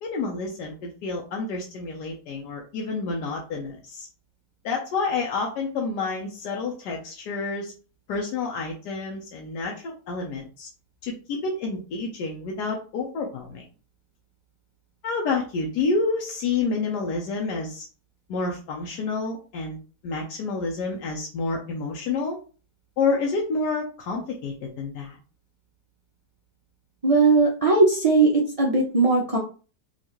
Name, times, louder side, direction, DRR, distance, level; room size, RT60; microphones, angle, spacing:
voice 1, 0.0-4.1 4.6-7.7 8.1-10.7 11.0-13.6 15.0-17.8 18.3-19.8 20.0-22.4 23.0-25.2, left 4 dB, 90° left, 0 dB, 1.3 m, -29 dB
voice 2, 27.0-28.3 28.6-29.4, right 3 dB, 65° right, -2 dB, 0.3 m, -18 dB
4.4 x 2.4 x 2.9 m, 0.36 s
omnidirectional pair, 1.7 m